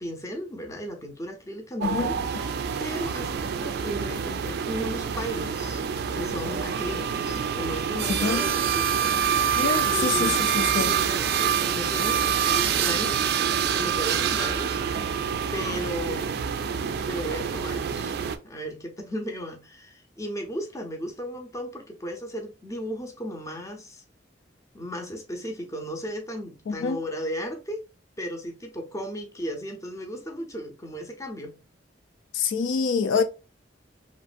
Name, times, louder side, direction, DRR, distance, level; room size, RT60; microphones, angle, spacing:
voice 1, 0.0-5.8 6.1-10.4 10.7-13.2 13.7-14.8 15.5-16.5 17.1-24.0 24.7-27.8 28.2-31.6, equal, 15° left, 0.6 m, -35 dB
sound 1, 1.8-18.4, right 7 dB, 60° right, 0.3 m, -26 dB
voice 2, 8.1-8.4 9.5-10.9 26.7-27.0 32.3-33.2, left 5 dB, 85° left, 0.4 m, -26 dB
3.0 x 2.5 x 2.4 m
head